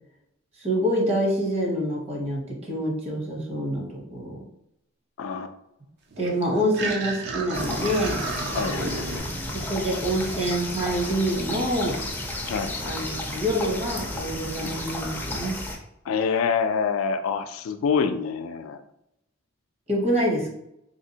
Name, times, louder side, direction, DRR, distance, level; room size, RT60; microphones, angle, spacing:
voice 1, 0.6-4.4 6.2-8.3 9.7-12.0 12.8-15.6 19.9-20.5, equal, 30° right, -1 dB, 0.9 m, -26 dB
voice 2, 5.2-5.5 8.5-9.3 12.5-12.7 14.6-14.7 16.0-18.8, left 6 dB, 90° left, 9 dB, 0.3 m, -26 dB
sound 1, 6.1-9.2, right 3 dB, 55° right, 0.6 m, -32 dB
sound 2, 7.5-15.8, left 1 dB, 10° left, 0.4 m, -32 dB
3.3 x 2.8 x 2.8 m, 0.82 s
head